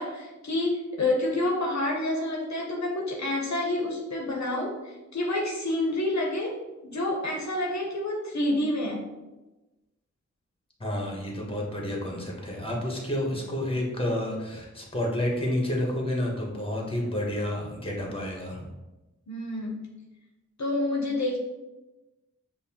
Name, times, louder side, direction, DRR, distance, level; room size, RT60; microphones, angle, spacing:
voice 1, 0.0-6.5 6.8-9.0 19.3-19.9 20.6-21.4, left 1 dB, 70° left, 0 dB, 0.7 m, -28 dB
voice 2, 10.8-18.7, left 1 dB, 20° left, -1 dB, 1.0 m, -30 dB
5.2 x 2.2 x 2.8 m, 1.1 s
cardioid pair, 45°, 29 cm